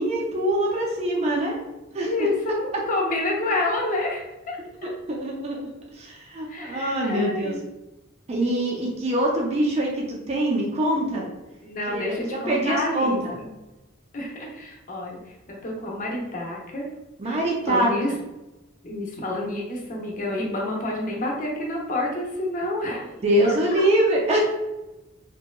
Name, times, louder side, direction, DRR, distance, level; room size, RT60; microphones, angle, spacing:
voice 1, 0.0-1.6 1.9-2.3 4.8-5.6 5.9-7.6 8.3-11.3 12.1-13.4 17.2-18.2 23.2-24.4, right 1 dB, 30° right, -1 dB, 0.4 m, -24 dB
voice 2, 2.0-4.9 6.5-7.6 11.6-13.5 14.1-15.2 15.5-16.9 17.3-17.4 17.7-18.1 18.8-23.1 23.4-23.8, left 2 dB, 40° left, -2 dB, 0.6 m, -29 dB
2.7 x 2.1 x 2.2 m, 1.0 s
head